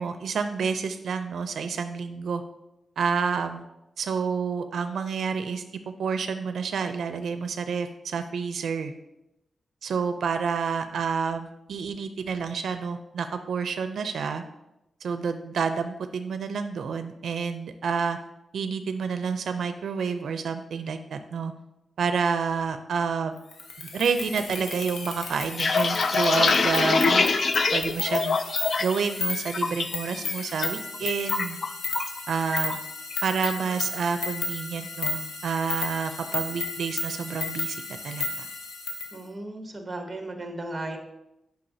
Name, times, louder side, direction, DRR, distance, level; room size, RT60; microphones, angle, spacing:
voice 1, 0.0-2.4 3.0-3.6 4.0-5.6 6.0-8.9 9.8-14.4 15.0-18.2 18.5-21.5 22.0-23.4 23.8-27.3 27.7-28.4 28.8-31.6 32.3-32.8 33.2-38.5, right 5 dB, 85° right, 8 dB, 0.4 m, -29 dB
sound 1, 23.5-39.1, left 3 dB, 85° left, 0.8 m, -33 dB
sound 2, 25.3-29.0 29.3-29.8 30.2-30.7 30.9-32.2 32.5-32.8 33.1-33.6, left 4 dB, 45° left, 0.3 m, -24 dB
voice 2, 39.1-41.0, right 2 dB, 20° right, 4 dB, 0.9 m, -35 dB
8.6 x 5.6 x 2.7 m, 0.89 s
wide cardioid pair, 165°, 0 cm